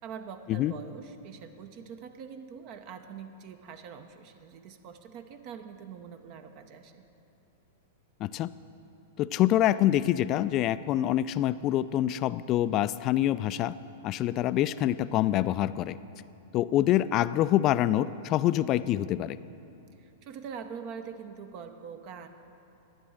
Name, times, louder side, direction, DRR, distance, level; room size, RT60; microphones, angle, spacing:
voice 1, 0.0-7.0 20.0-22.3, right 6 dB, 45° right, 8 dB, 0.7 m, -44 dB
voice 2, 8.2-8.5 9.2-13.8 14.0-16.0 16.5-19.4, left 13 dB, 40° left, 16 dB, 0.3 m, -26 dB
11.5 x 8.9 x 6.3 m, 2.8 s
hypercardioid pair, 100°, 0 cm